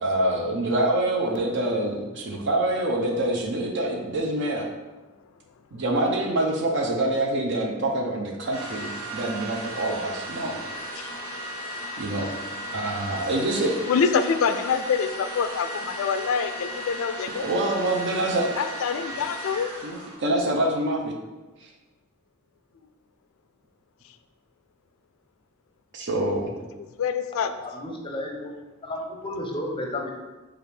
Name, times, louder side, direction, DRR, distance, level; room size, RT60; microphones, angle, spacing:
voice 1, 0.0-4.7 5.7-10.6 12.0-12.3 12.7-13.8 17.4-18.5 19.8-21.1 21.6-21.7 25.9-26.5, right 1 dB, 60° right, 1 dB, 0.5 m, -26 dB
sound 1, 8.5-20.2, equal, 75° right, 1.1 m, -36 dB
voice 2, 13.9-17.5 18.6-19.7 27.0-27.5, left 6 dB, 75° left, 10 dB, 0.3 m, -25 dB
voice 3, 27.5-28.5 28.8-30.1, left 1 dB, 25° left, 1 dB, 0.6 m, -32 dB
4.9 x 2.4 x 3.2 m, 1.2 s
head